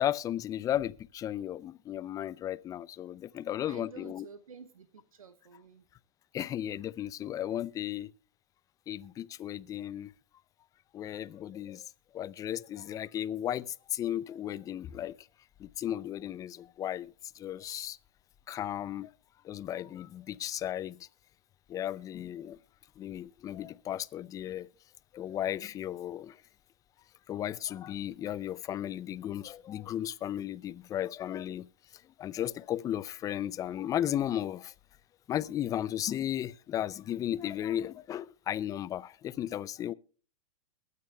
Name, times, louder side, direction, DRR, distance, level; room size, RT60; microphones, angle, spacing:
voice 1, 0.0-4.2 6.3-8.1 8.9-10.1 10.9-15.3 15.6-18.0 18.5-19.1 19.4-21.1 21.7-22.6 23.0-24.7 25.1-26.4 27.3-31.7 32.2-34.7 35.3-39.9, left 11 dB, 20° left, 0.4 m, -35 dB
voice 2, 3.6-5.9, right 6 dB, 85° right, 1.1 m, -51 dB
22.0 x 9.5 x 2.2 m
hypercardioid pair, 120°, 17 cm